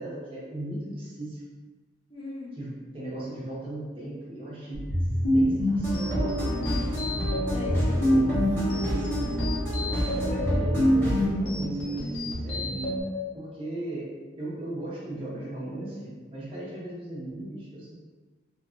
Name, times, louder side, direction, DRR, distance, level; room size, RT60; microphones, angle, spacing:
voice 1, 0.0-1.4 2.5-4.9 5.3-6.4 7.9-8.3 9.8-13.0 13.3-17.9, right 1 dB, 30° right, -7 dB, 0.7 m, -37 dB
voice 2, 2.1-2.5 6.6-6.9 7.5-8.4 8.7-9.0, left 2 dB, 30° left, -4 dB, 0.5 m, -39 dB
sound 1, 4.7-13.0, equal, 90° left, 0.7 m, -27 dB
sound 2, 5.8-11.3, equal, 10° left, 1.0 m, -29 dB
2.8 x 2.3 x 2.4 m, 1.3 s
head